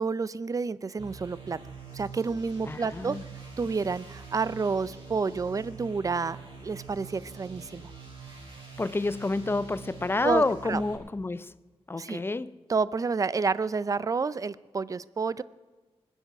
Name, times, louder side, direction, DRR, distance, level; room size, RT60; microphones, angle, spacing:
voice 1, 0.0-1.6 1.9-3.2 3.6-6.4 6.6-7.9 10.2-10.8 12.0-12.2 12.7-15.4, right 4 dB, 30° right, 0.4 m, -29 dB
sound 1, 1.0-10.9, right 5 dB, 55° right, 6.1 m, -45 dB
voice 2, 2.7-3.2 8.8-11.5 11.9-12.6, left 2 dB, 20° left, 0.5 m, -29 dB
25.0 x 9.1 x 6.1 m
wide cardioid pair, 130°, 11 cm